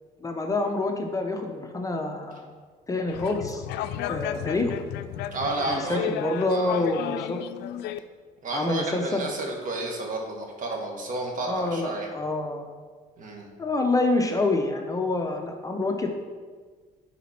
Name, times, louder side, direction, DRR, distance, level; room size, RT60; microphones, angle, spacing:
voice 1, 0.2-2.5 2.9-3.7 4.1-4.7 5.7-7.4 8.5-9.3 11.4-12.6 13.6-16.1, left 2 dB, 20° left, 3 dB, 0.7 m, -27 dB
sound 1, 3.1-8.0, left 11 dB, 80° left, 0.4 m, -33 dB
voice 2, 5.3-6.0 6.5-6.8 8.4-12.1 13.2-13.5, right 2 dB, 50° right, 1 dB, 1.6 m, -31 dB
9.9 x 4.1 x 4.4 m, 1.5 s
cardioid pair, 110°, 17 cm